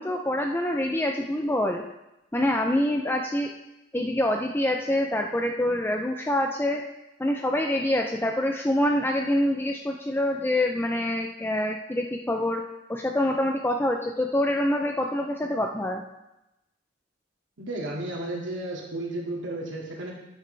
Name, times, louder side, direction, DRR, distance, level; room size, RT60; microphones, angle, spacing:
voice 1, 0.0-1.9 2.3-3.5 3.9-6.8 7.2-12.6 12.9-16.0, left 1 dB, 10° left, 2 dB, 0.5 m, -26 dB
voice 2, 17.6-20.1, right 1 dB, 85° right, -2 dB, 2.3 m, -33 dB
12.0 x 9.3 x 3.4 m, 0.92 s
head